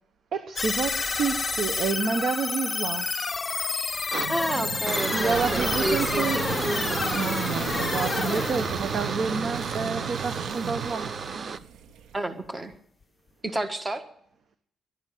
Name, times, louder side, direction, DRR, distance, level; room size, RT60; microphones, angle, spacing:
voice 1, 0.3-3.1 5.1-6.4 7.1-11.1, right 5 dB, 60° right, 9 dB, 1.2 m, -29 dB
sound 1, 0.6-9.8, left 4 dB, 30° left, 0.5 m, -30 dB
sound 2, 4.1-11.6, right 5 dB, 40° right, 0.8 m, -33 dB
sound 3, 4.2-12.2, right 8 dB, 80° right, 0.9 m, -35 dB
voice 2, 4.3-7.0 12.1-12.7 13.4-14.0, right 1 dB, 20° right, 9 dB, 1.6 m, -30 dB
11.5 x 11.0 x 9.2 m, 0.67 s
cardioid pair, 90°, 0 cm